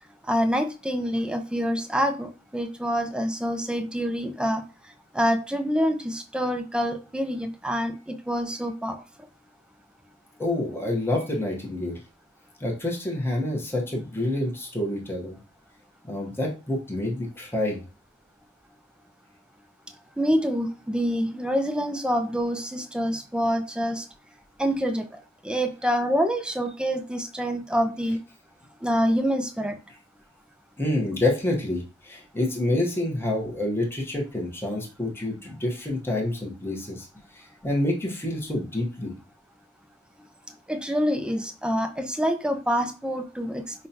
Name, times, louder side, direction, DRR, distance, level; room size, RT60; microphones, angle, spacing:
voice 1, 0.3-4.6 5.1-9.0 20.2-24.0 24.6-25.1 25.4-28.2 28.8-29.8 40.7-43.9, equal, 5° right, 7 dB, 0.4 m, -26 dB
voice 2, 10.4-12.0 12.6-15.4 16.0-17.8 30.8-37.1 37.3-39.2, left 1 dB, 10° left, -1 dB, 0.9 m, -28 dB
5.4 x 2.2 x 2.7 m, 0.33 s
head